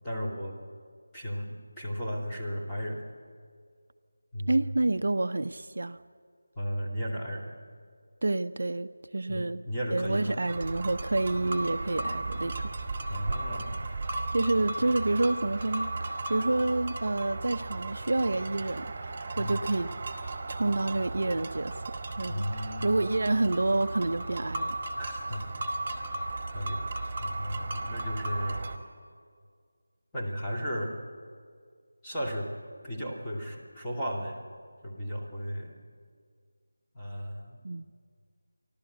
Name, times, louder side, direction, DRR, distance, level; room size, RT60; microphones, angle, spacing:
voice 1, 0.0-0.6 1.1-1.5 1.8-3.0 4.3-4.7 6.6-7.5 9.3-10.5 13.1-13.9 14.8-14.9 19.4-19.6 22.3-23.0 25.0-25.5 25.9-26.0 26.5-26.8 27.2-28.7 30.1-30.9 32.0-32.5 32.8-34.4 34.8-35.8 36.9-37.6, equal, 10° left, -6 dB, 2.4 m, -34 dB
voice 2, 4.5-6.0 8.2-9.6 9.9-12.7 14.3-19.9 20.5-21.7 22.2-24.8 37.6-37.9, right 2 dB, 60° right, 11 dB, 0.6 m, -28 dB
sound 1, 10.5-28.8, right 2 dB, 30° right, 1.7 m, -35 dB
28.0 x 12.5 x 8.0 m, 2.1 s
figure-of-eight pair, 165°, 0 cm